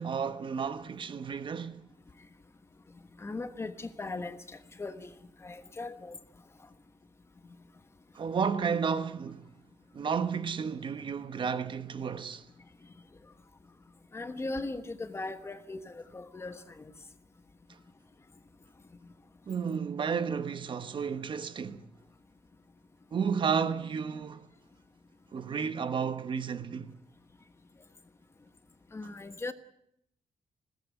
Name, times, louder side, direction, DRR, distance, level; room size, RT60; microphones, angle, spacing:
voice 1, 0.0-1.9 8.1-9.5 9.9-12.5 19.5-21.8 23.1-24.5 25.3-27.0, right 6 dB, 45° right, 1.2 m, -32 dB
voice 2, 3.2-5.1 5.4-6.2 14.1-16.9 28.9-29.5, left 2 dB, 20° left, 1.2 m, -39 dB
20.5 x 17.5 x 9.3 m
wide cardioid pair, 170°, 12 cm